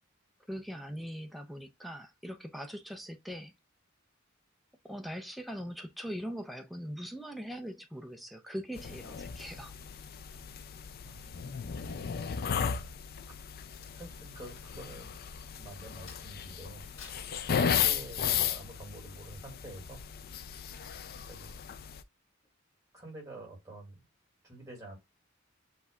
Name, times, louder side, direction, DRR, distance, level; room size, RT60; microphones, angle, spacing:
voice 1, 0.5-3.5 4.8-9.7, equal, ahead, 0.6 m, -41 dB
sound 1, 8.8-22.0, left 7 dB, 50° left, 0.4 m, -35 dB
voice 2, 11.0-11.5 13.9-15.2 15.5-16.8 17.7-20.0 20.3-20.4 21.2-21.6 22.9-24.0 24.4-25.0, right 2 dB, 15° right, 2.2 m, -48 dB
Crack, 13.4-16.5 16.9-18.1 18.6-18.8, left 5 dB, 70° left, 1.7 m, -55 dB
7.9 x 2.7 x 2.4 m
head